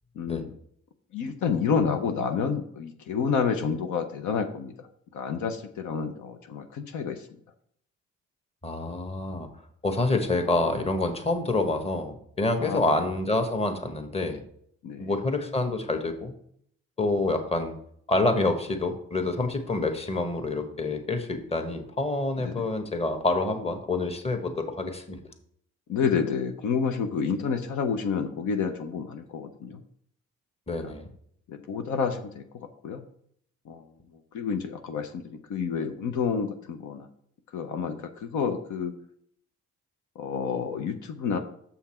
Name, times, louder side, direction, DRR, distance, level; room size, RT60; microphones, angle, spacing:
voice 1, 0.2-0.5 1.1-4.7 5.1-7.2 12.6-12.8 14.8-15.1 22.4-22.6 25.9-29.8 30.8-30.9 31.5-32.4 32.8-33.0 33.7-33.8 34.3-37.1 37.5-38.9 40.2-41.4, left 6 dB, 80° left, 6 dB, 0.9 m, -29 dB
voice 2, 8.6-9.5 9.8-14.4 15.0-16.3 17.0-17.8 18.1-25.2 30.7-31.1, left 2 dB, 20° left, 6 dB, 1.2 m, -27 dB
7.0 x 5.7 x 4.4 m, 0.66 s
cardioid pair, 90°, 30 cm